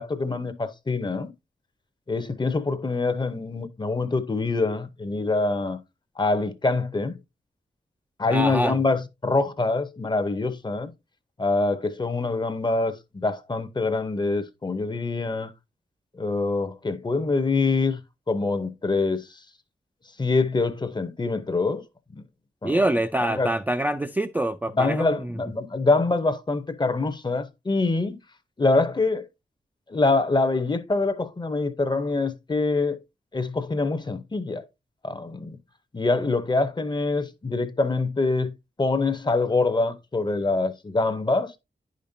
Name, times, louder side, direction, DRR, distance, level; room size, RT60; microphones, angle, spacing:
voice 1, 0.0-1.3 2.1-5.8 6.2-7.2 8.2-10.9 11.4-15.5 16.1-18.0 18.3-19.4 20.2-21.8 22.1-22.2 22.6-22.8 23.2-23.5 24.7-28.2 28.6-29.3 29.9-33.0 33.3-34.7 35.0-35.6 35.9-41.5, left 3 dB, 25° left, 0.7 m, -25 dB
voice 2, 8.3-8.8 22.6-25.3, right 1 dB, 10° right, 0.3 m, -25 dB
10.0 x 5.2 x 2.6 m
wide cardioid pair, 150°, 18 cm